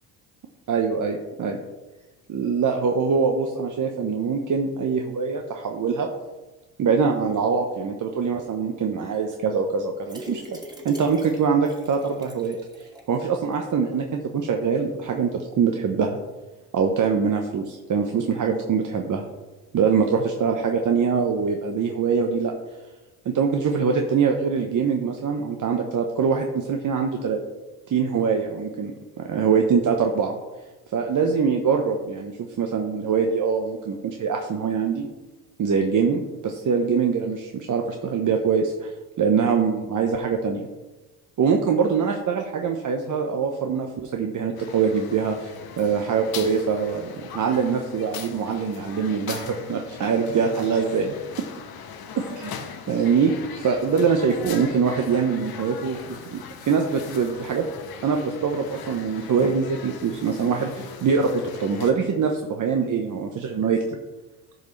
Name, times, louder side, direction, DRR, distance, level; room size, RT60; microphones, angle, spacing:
voice 1, 0.7-1.6 2.3-6.1 6.8-10.6 10.8-16.2 16.7-19.2 19.7-22.5 23.2-27.4 27.9-28.9 29.2-30.3 30.9-32.3 32.6-35.1 35.6-40.7 41.4-51.1 52.2-52.5 52.9-57.7 58.0-64.0, right 5 dB, 45° right, 3 dB, 1.0 m, -23 dB
sound 1, 10.0-13.2 13.5-13.6 13.9-14.0, equal, 10° right, 2.3 m, -42 dB
sound 2, 44.5-61.9, left 7 dB, 55° left, 1.2 m, -40 dB
13.5 x 5.3 x 3.3 m, 1.2 s
supercardioid pair, 65°, 43 cm